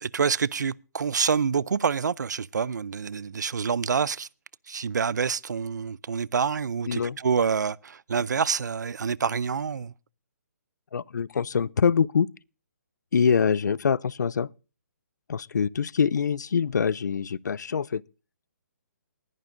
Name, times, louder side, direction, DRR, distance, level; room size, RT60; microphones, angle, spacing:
voice 1, 0.0-4.3 4.7-9.9, right 6 dB, 90° right, 0.5 m, -27 dB
voice 2, 6.9-7.2 10.9-12.3 13.1-14.5 15.3-18.0, left 6 dB, 80° left, 0.5 m, -24 dB
20.0 x 11.0 x 2.6 m
hypercardioid pair, 170°, 9 cm